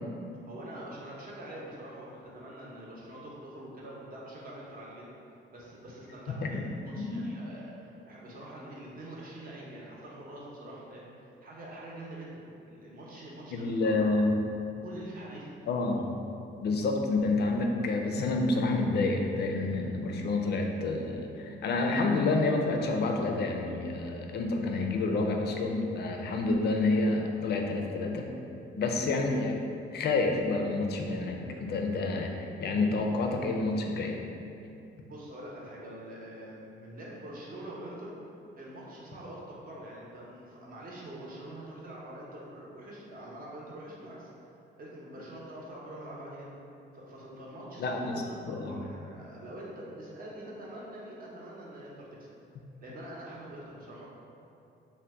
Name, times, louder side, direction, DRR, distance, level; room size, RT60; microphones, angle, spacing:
voice 1, 0.4-5.1 5.5-14.2 14.8-15.5 35.0-38.1 38.5-44.3 44.7-46.5 46.9-52.3 52.8-54.1, right 1 dB, 45° right, -5 dB, 0.7 m, -45 dB
voice 2, 13.5-14.4 15.7-16.2 16.6-28.3 28.8-29.6 29.9-32.3 32.6-34.2 47.8-48.2 48.5-48.7, left 3 dB, 55° left, 2 dB, 0.4 m, -28 dB
2.7 x 2.1 x 3.4 m, 2.7 s
cardioid pair, 90°, 20 cm